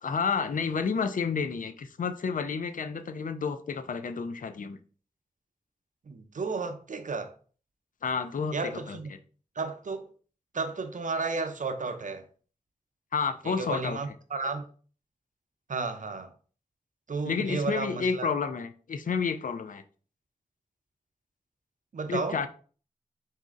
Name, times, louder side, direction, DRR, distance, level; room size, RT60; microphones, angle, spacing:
voice 1, 0.0-4.8 8.0-9.0 13.1-14.0 17.2-19.8 22.1-22.5, left 5 dB, 70° left, 0.5 m, -30 dB
voice 2, 6.1-7.3 8.5-9.1 9.6-10.1 10.5-12.2 13.4-14.6 15.7-16.3 17.1-18.3 21.9-22.4, right 4 dB, 65° right, 0.6 m, -33 dB
4.1 x 2.7 x 3.6 m
cardioid pair, 55°, 14 cm